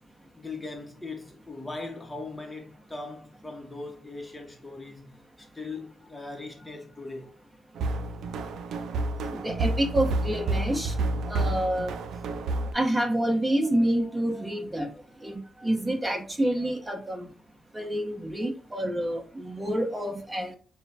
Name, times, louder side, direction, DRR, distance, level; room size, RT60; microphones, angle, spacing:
voice 1, 0.3-5.2 5.5-7.3, left 3 dB, 15° left, 0.9 m, -39 dB
sound 1, 7.8-12.7, right 2 dB, 80° right, 0.4 m, -29 dB
voice 2, 9.3-10.9 11.3-11.9 12.7-14.9 15.2-17.3 17.7-20.5, right 1 dB, 15° right, 1.0 m, -28 dB
6.2 x 2.2 x 2.8 m
cardioid pair, 75°, 0 cm